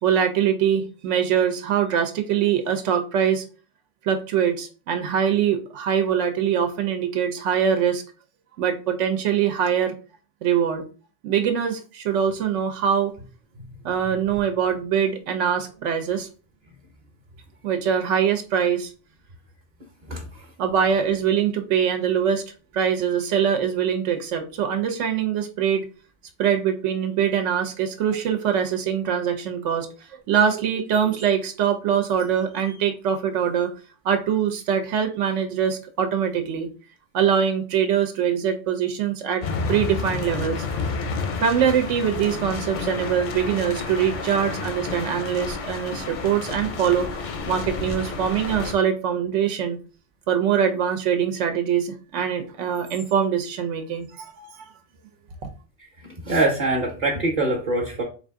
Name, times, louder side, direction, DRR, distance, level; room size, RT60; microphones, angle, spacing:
voice 1, 0.0-3.4 4.0-8.0 8.6-9.9 10.4-10.8 11.2-13.1 13.8-16.3 17.6-18.9 20.6-22.4 22.7-25.8 26.4-29.9 30.3-33.7 34.0-36.7 37.1-39.4 39.7-40.7 41.4-47.1 47.5-49.8 50.3-54.7, right 8 dB, 90° right, 6 dB, 1.0 m, -23 dB
voice 2, 20.1-20.5 56.0-58.0, right 2 dB, 40° right, 1 dB, 0.8 m, -24 dB
sound 1, 39.4-48.7, left 4 dB, 55° left, 0.6 m, -30 dB
3.9 x 2.5 x 3.6 m, 0.36 s
omnidirectional pair, 1.2 m